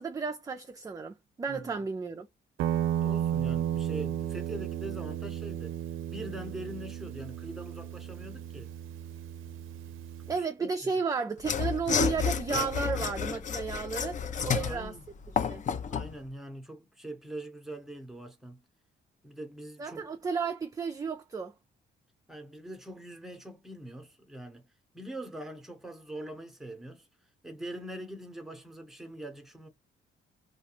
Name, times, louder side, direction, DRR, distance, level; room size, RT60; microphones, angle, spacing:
voice 1, 0.0-2.3 10.3-15.0 15.5-15.6 19.8-21.5, right 5 dB, 20° right, 0.3 m, -33 dB
voice 2, 1.5-1.8 3.0-5.8 6.1-8.7 10.2-10.7 14.4-15.0 15.9-18.6 19.2-20.1 22.3-24.7 24.9-27.1 27.4-29.7, right 1 dB, ahead, 0.9 m, -43 dB
Guitar, 2.6-10.4, right 10 dB, 85° right, 0.4 m, -34 dB
Mechanisms / Sawing, 11.4-16.1, left 7 dB, 40° left, 0.5 m, -31 dB
2.4 x 2.2 x 2.9 m
cardioid pair, 90°, 20 cm